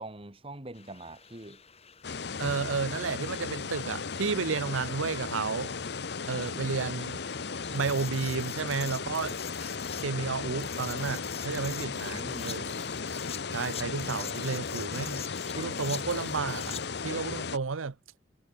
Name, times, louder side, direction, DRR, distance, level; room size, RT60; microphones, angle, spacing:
voice 1, 0.0-1.6 11.9-12.6, right 2 dB, 30° right, 1.9 m, -44 dB
sound 1, 0.7-17.0, left 9 dB, 30° left, 5.9 m, -46 dB
sound 2, 2.0-17.6, left 5 dB, 55° left, 0.9 m, -36 dB
voice 2, 2.4-5.7 6.3-7.2 7.7-9.4 10.0-12.7 13.5-15.2 15.6-16.8 17.0-17.9, right 5 dB, 90° right, 0.7 m, -32 dB
head